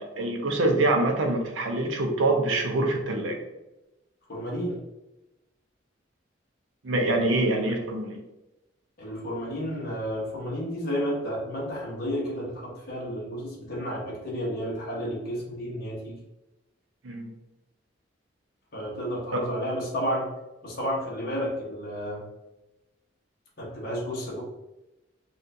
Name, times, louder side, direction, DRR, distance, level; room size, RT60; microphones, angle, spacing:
voice 1, 0.0-3.4 6.8-8.2 17.0-17.3, right 2 dB, 85° right, 2 dB, 0.7 m, -25 dB
voice 2, 4.3-4.8 9.0-16.2 18.7-20.3 20.6-22.2 23.6-24.4, equal, 55° left, -5 dB, 1.1 m, -31 dB
4.2 x 2.4 x 2.7 m, 0.97 s
head